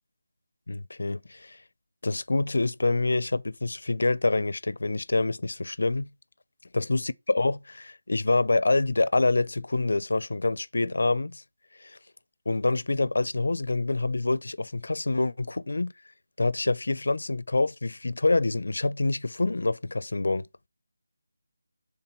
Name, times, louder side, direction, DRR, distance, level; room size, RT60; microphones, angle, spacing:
voice 1, 0.7-1.6 2.0-6.1 6.7-11.4 11.8-12.0 12.5-15.9 16.4-20.5, left 2 dB, 70° left, 0.6 m, -26 dB
9.5 x 3.8 x 4.4 m
figure-of-eight pair, 165°, 0 cm